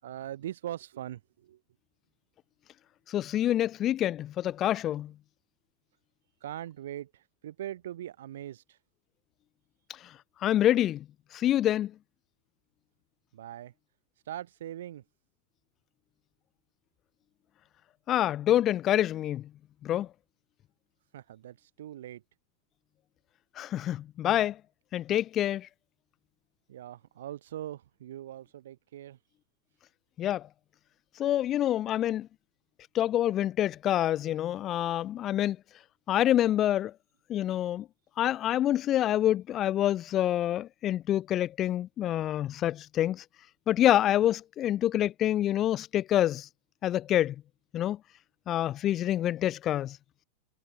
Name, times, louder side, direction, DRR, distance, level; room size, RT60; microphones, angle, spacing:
voice 1, 0.0-1.6 6.4-8.8 13.3-13.7 14.3-15.0 21.1-22.2 26.7-29.2, right 12 dB, 60° right, 7.8 m, -41 dB
voice 2, 3.1-5.1 10.0-10.1 10.4-11.0 11.3-11.9 18.1-19.5 19.8-20.1 23.6-24.6 24.9-25.7 30.2-30.5 31.2-32.3 32.9-35.6 36.1-36.9 37.3-37.9 38.2-43.2 43.7-46.5 46.8-47.3 47.7-48.0 48.5-50.0, left 12 dB, 30° left, 1.3 m, -27 dB
figure-of-eight pair, 90°, 0 cm